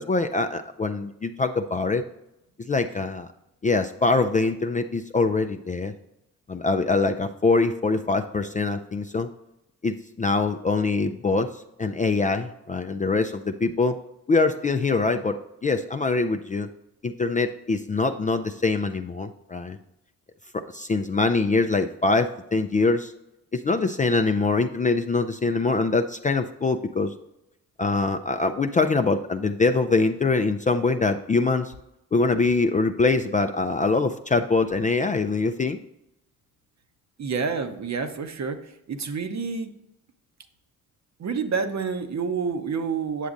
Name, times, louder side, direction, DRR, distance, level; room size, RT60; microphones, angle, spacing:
voice 1, 0.0-2.0 2.6-3.3 3.6-5.9 6.5-9.3 9.8-14.0 14.3-16.7 17.0-19.8 20.7-23.1 23.5-27.1 27.8-31.7 32.1-35.8, left 3 dB, 20° left, 6 dB, 0.4 m, -24 dB
voice 2, 37.2-38.6 38.9-39.7 41.2-43.3, right 5 dB, 45° right, 7 dB, 0.9 m, -28 dB
8.2 x 6.9 x 2.5 m, 0.86 s
supercardioid pair, 50°, 38 cm